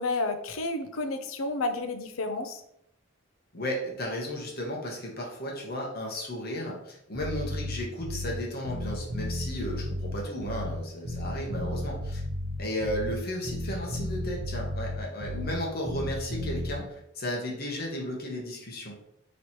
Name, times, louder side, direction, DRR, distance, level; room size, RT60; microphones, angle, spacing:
voice 1, 0.0-2.6, left 2 dB, 80° left, 7 dB, 0.5 m, -31 dB
voice 2, 3.5-12.2 12.6-19.0, equal, 50° left, -1 dB, 1.0 m, -34 dB
Bass guitar, 7.1-8.4 8.6-10.8 11.0-13.2 13.4-15.6 15.8-16.7, left 1 dB, 55° right, 0.9 m, -33 dB
3.1 x 3.0 x 4.2 m, 0.75 s
head